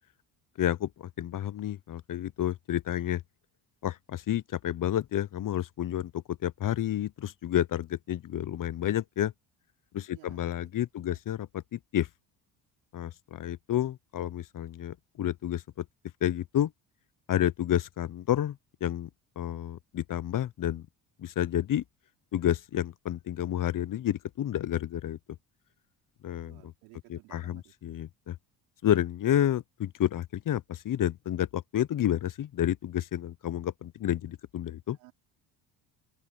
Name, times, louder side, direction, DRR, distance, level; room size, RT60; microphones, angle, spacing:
voice 1, 0.6-3.2 3.8-9.3 9.9-12.1 12.9-15.8 16.2-16.7 17.3-19.1 19.4-20.8 21.2-21.8 22.3-25.2 26.2-26.7 27.1-28.4 28.8-35.0, left 11 dB, 45° left, 0.9 m, -30 dB
voice 2, 10.1-10.7 11.0-11.2 26.4-27.7 34.9-35.1, right 26 dB, 85° right, 4.9 m, -56 dB
open air
hypercardioid pair, 60°, 44 cm